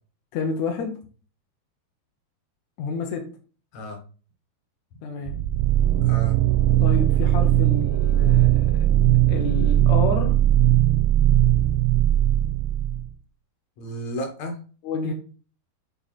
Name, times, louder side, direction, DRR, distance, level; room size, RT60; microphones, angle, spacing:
voice 1, 0.3-1.0 2.8-3.3 5.0-5.4 6.8-8.9 9.3-10.3 14.8-15.1, left 4 dB, 75° left, 2 dB, 1.7 m, -29 dB
sound 1, 5.3-13.1, right 13 dB, 85° right, 2.4 m, -19 dB
voice 2, 6.0-6.4 13.8-14.6, right 1 dB, 55° left, 4 dB, 2.2 m, -33 dB
8.5 x 3.9 x 4.2 m, 0.38 s
omnidirectional pair, 4.5 m